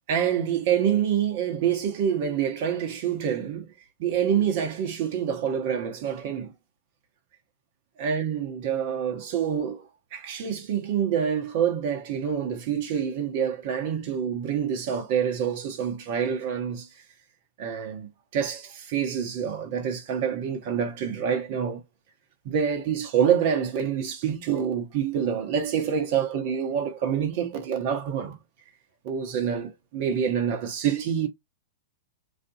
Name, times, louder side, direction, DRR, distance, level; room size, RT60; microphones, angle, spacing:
voice 1, 0.1-3.7 4.0-6.5 8.0-16.9 17.6-21.8 22.4-28.4 29.0-31.3, right 8 dB, 50° right, 0.8 m, -27 dB
3.2 x 2.6 x 2.6 m
figure-of-eight pair, 100°, 0 cm